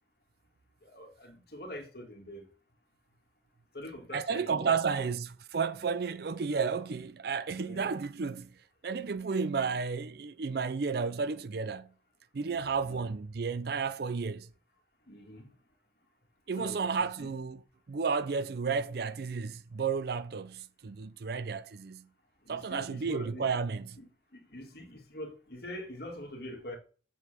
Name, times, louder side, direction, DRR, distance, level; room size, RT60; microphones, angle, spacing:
voice 1, 0.8-2.5 3.7-4.8 7.6-7.9 12.8-13.1 15.1-15.5 16.6-17.3 22.4-23.5 24.0-24.1 24.3-26.8, left 1 dB, 55° left, 2.1 m, -44 dB
voice 2, 4.1-8.6 8.8-11.9 12.3-14.5 16.5-17.6 17.9-22.1 22.5-24.0, right 5 dB, 55° right, 0.4 m, -32 dB
7.4 x 4.0 x 6.7 m
head